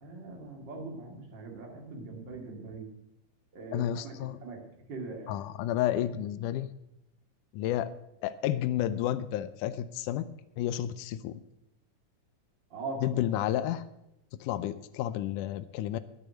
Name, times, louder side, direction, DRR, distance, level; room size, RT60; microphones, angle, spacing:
voice 1, 0.0-2.9 3.5-4.6 4.9-5.4 12.7-13.2, right 3 dB, 35° right, 0 dB, 2.8 m, -41 dB
voice 2, 3.7-4.4 5.3-6.7 7.5-7.9 8.2-10.3 10.6-11.4 13.0-13.8 14.4-16.0, left 12 dB, 80° left, 12 dB, 2.1 m, -31 dB
9.7 x 8.5 x 9.0 m, 0.85 s
omnidirectional pair, 3.7 m